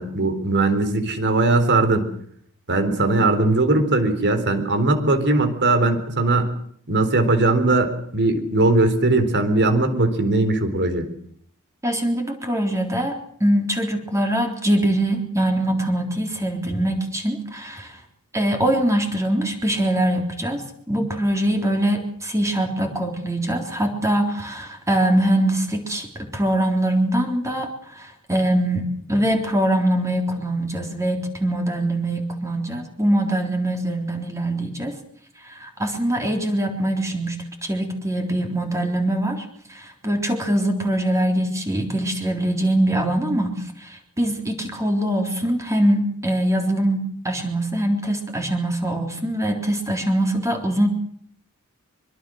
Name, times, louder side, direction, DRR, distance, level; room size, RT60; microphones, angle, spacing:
voice 1, 0.0-2.0 2.7-6.5 6.9-11.1, right 2 dB, 55° right, 9 dB, 4.0 m, -19 dB
voice 2, 11.8-18.0 18.3-35.0 35.4-50.9, right 1 dB, 15° right, 3 dB, 3.7 m, -23 dB
24.5 x 24.0 x 6.4 m, 0.63 s
head